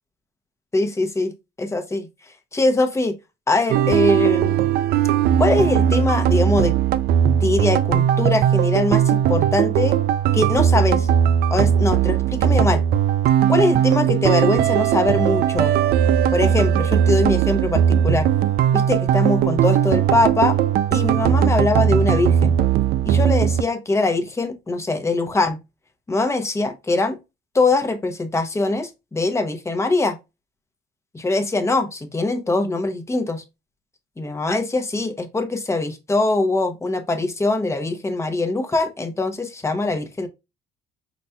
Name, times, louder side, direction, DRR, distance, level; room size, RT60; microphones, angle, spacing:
voice 1, 0.7-2.1 2.5-3.1 3.5-4.6 5.4-6.7 7.4-10.0 10.3-11.1 11.5-12.8 13.5-15.7 16.3-18.3 18.7-20.6 20.9-22.5 23.0-25.6 26.1-27.2 27.5-30.2 31.1-33.4 34.2-40.3, left 2 dB, 15° left, 0.9 m, -22 dB
sound 1, 3.7-23.6, right 9 dB, 65° right, 0.4 m, -18 dB
5.4 x 4.1 x 2.3 m
cardioid pair, 110°, 17 cm